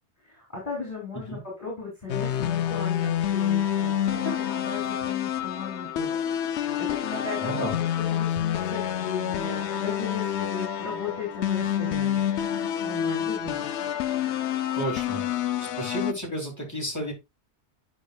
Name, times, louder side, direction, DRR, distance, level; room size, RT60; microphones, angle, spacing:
voice 1, 0.2-12.3 12.8-13.7, left 4 dB, 30° left, -3 dB, 3.7 m, -37 dB
sound 1, 2.1-16.1, left 10 dB, 75° left, 0.9 m, -28 dB
voice 2, 7.4-7.8 14.7-15.2 15.6-17.1, right 1 dB, 15° left, -2 dB, 2.9 m, -31 dB
9.6 x 6.0 x 2.4 m, 0.21 s
omnidirectional pair, 1.2 m